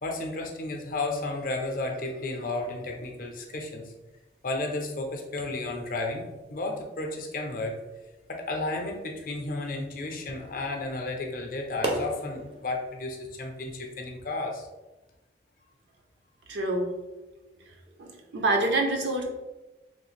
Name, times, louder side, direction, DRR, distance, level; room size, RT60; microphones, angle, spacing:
voice 1, 0.0-3.9 4.4-7.8 8.3-14.7, left 2 dB, 50° left, 2 dB, 0.5 m, -33 dB
sound 1, 2.4-14.1, right 1 dB, 30° right, 0.5 m, -43 dB
voice 2, 16.5-16.9 18.0-19.2, right 2 dB, 75° right, 2 dB, 0.6 m, -26 dB
3.1 x 2.4 x 3.1 m, 1.1 s
head